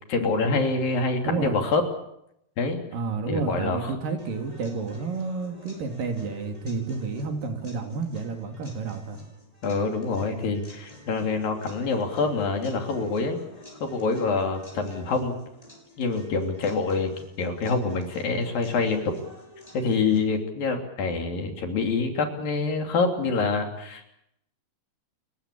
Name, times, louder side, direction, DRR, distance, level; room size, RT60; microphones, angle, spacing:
voice 1, 0.1-1.8 2.6-2.8 3.3-3.9 9.6-13.4 13.8-15.4 16.0-17.1 17.4-19.1 19.7-24.1, left 4 dB, 65° left, 3 dB, 4.7 m, -26 dB
voice 2, 1.2-1.6 2.9-9.2, right 4 dB, 60° right, 4 dB, 4.3 m, -30 dB
sound 1, 4.2-20.2, equal, 10° left, 7.1 m, -48 dB
30.0 x 15.0 x 8.6 m, 0.79 s
omnidirectional pair, 4.5 m